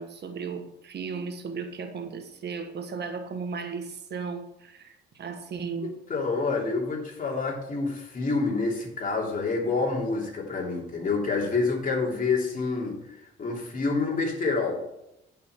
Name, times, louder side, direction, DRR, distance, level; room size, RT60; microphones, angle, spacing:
voice 1, 0.0-6.0, right 5 dB, 60° right, 7 dB, 1.3 m, -35 dB
voice 2, 5.8-13.0 13.4-14.8, left 4 dB, 45° left, -1 dB, 2.9 m, -27 dB
10.0 x 5.8 x 5.9 m, 0.85 s
cardioid pair, 90°, 20 cm